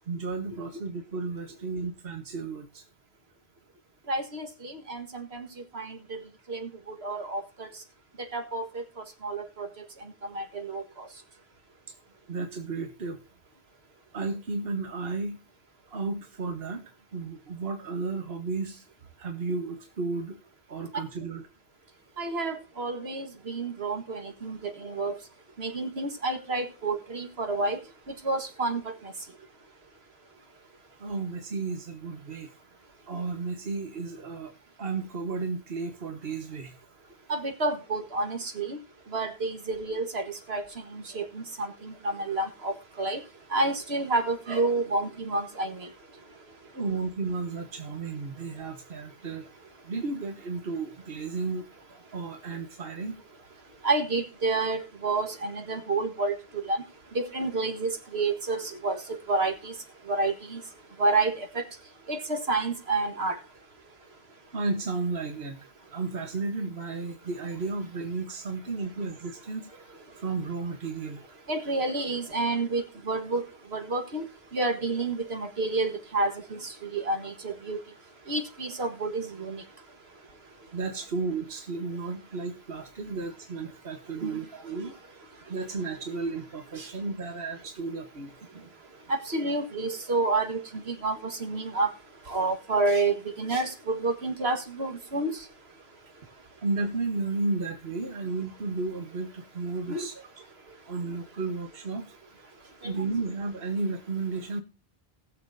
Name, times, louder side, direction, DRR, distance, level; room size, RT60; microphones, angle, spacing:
voice 1, 0.1-2.8 12.3-13.2 14.1-15.4 15.9-16.8 17.1-18.9 19.2-20.4 20.7-21.5 31.0-32.5 33.1-36.8 46.7-49.5 49.8-53.1 64.5-65.6 65.9-69.7 70.1-71.2 80.7-84.9 85.4-88.3 96.6-100.2 100.9-102.1 102.8-104.6, right 3 dB, 65° right, 1.6 m, -33 dB
voice 2, 4.1-5.5 5.7-6.2 6.5-6.7 7.0-7.4 8.2-8.8 9.2-9.7 10.3-10.8 22.2-25.1 25.6-27.8 28.2-28.8 37.3-38.8 39.1-40.6 40.9-43.2 43.5-45.9 53.8-56.4 56.6-56.8 57.2-59.0 59.3-59.7 60.1-60.6 61.0-61.6 62.1-63.4 71.5-73.4 73.7-74.3 74.5-76.6 76.9-77.8 78.3-79.6 84.2-84.3 86.8-86.9 89.1-91.9 92.3-95.4 99.9-100.1 102.8-103.1, right 3 dB, 80° right, 2.0 m, -29 dB
20.0 x 7.1 x 2.7 m
omnidirectional pair, 1.0 m